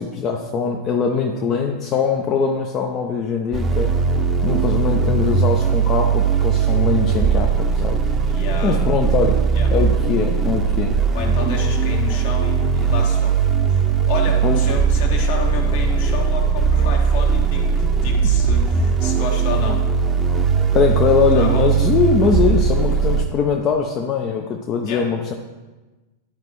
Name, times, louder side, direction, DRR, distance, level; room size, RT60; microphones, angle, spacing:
voice 1, 0.0-3.9 4.4-8.1 8.6-9.4 9.7-11.0 14.4-14.6 20.7-25.3, left 6 dB, 30° left, 2 dB, 0.6 m, -21 dB
sound 1, 3.5-23.2, right 6 dB, 20° right, 0.8 m, -19 dB
voice 2, 8.3-8.8 9.5-9.7 11.1-13.4 13.7-17.7 17.9-19.8 21.3-21.7 24.8-25.1, left 4 dB, 50° left, 2 dB, 1.3 m, -30 dB
12.0 x 4.9 x 3.1 m, 1.2 s
figure-of-eight pair, 90°, 0 cm